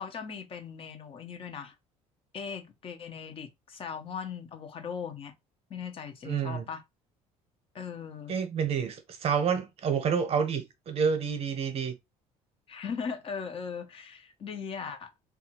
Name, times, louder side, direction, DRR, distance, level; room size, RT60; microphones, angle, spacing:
voice 1, 0.0-1.7 2.3-5.3 5.7-6.8 7.7-8.3 12.7-15.2, left 6 dB, 40° left, 0.6 m, -39 dB
voice 2, 6.2-6.7 8.3-11.9, right 6 dB, 45° right, 0.8 m, -29 dB
2.7 x 2.3 x 2.8 m
cardioid pair, 100°, 14 cm